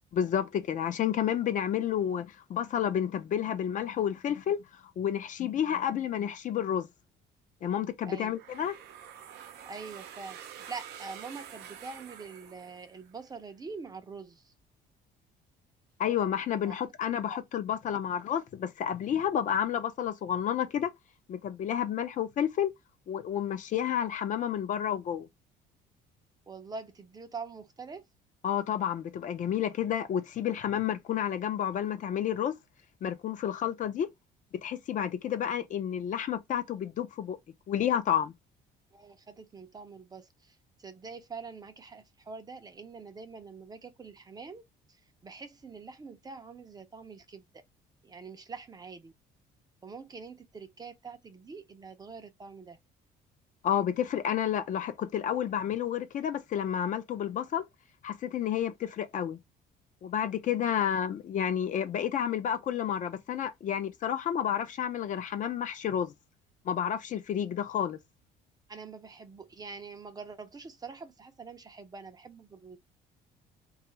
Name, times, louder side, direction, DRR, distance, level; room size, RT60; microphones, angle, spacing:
voice 1, 0.1-4.6 5.0-6.9 7.6-8.8 16.0-20.9 21.3-22.7 23.1-25.3 28.4-32.5 33.0-34.1 34.6-37.4 37.7-38.3 53.6-57.7 58.0-59.4 60.0-66.1 66.7-68.0, left 9 dB, 50° left, 0.5 m, -30 dB
sound 1, 8.3-13.2, right 9 dB, 75° right, 0.5 m, -47 dB
voice 2, 9.7-14.5 16.6-16.7 17.3-17.4 26.5-28.0 38.9-44.6 45.2-47.4 48.0-49.1 49.8-52.8 68.7-72.8, right 4 dB, 25° right, 0.5 m, -45 dB
2.4 x 2.4 x 2.9 m
cardioid pair, 110°, 17 cm